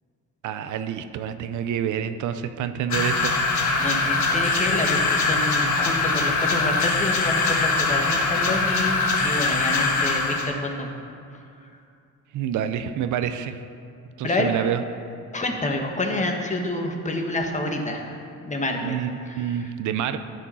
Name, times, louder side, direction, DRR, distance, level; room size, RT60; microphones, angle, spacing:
voice 1, 0.4-3.4 3.6-4.0 12.3-13.6 14.2-14.8 18.8-20.2, right 9 dB, 75° right, 10 dB, 0.6 m, -28 dB
sound 1, 2.9-10.5, left 3 dB, 70° left, 1.5 m, -22 dB
voice 2, 3.8-10.9 11.6-11.7 14.2-14.5 15.3-18.2 18.4-19.0 19.3-19.6, left 2 dB, 25° left, 2 dB, 1.3 m, -28 dB
11.5 x 5.0 x 5.6 m, 2.5 s
cardioid pair, 90°, 30 cm